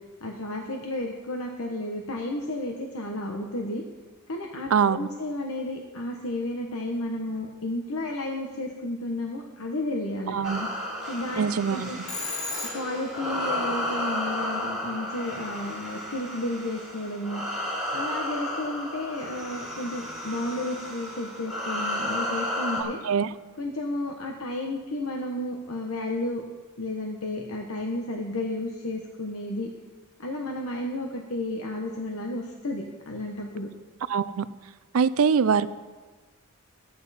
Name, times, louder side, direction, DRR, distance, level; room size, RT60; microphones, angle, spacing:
voice 1, 0.2-3.8 4.3-12.0 12.7-17.4 17.9-23.0 23.6-26.4 26.8-29.7 30.2-33.7, left 1 dB, 80° left, 1 dB, 1.1 m, -32 dB
voice 2, 4.7-5.1 10.3-10.6 11.4-11.9 22.8-23.3 34.1-34.5 34.9-35.7, right 6 dB, 80° right, 15 dB, 0.5 m, -23 dB
sound 1, 10.4-22.8, left 1 dB, 5° right, 2.9 m, -33 dB
Telephone, 12.1-13.2, left 4 dB, 55° left, 1.5 m, -34 dB
14.5 x 9.4 x 4.2 m, 1.3 s
head